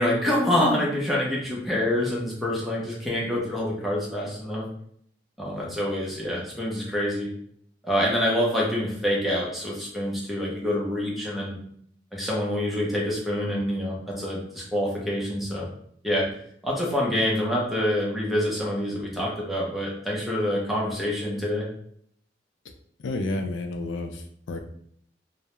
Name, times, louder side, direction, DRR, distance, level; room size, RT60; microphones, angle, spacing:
voice 1, 0.0-4.6 5.4-7.3 7.8-11.6 12.1-15.7 16.0-16.3 16.6-21.7, left 1 dB, ahead, -5 dB, 0.6 m, -26 dB
voice 2, 23.0-24.6, left 2 dB, 85° left, 5 dB, 0.4 m, -30 dB
2.3 x 2.0 x 2.9 m, 0.66 s
head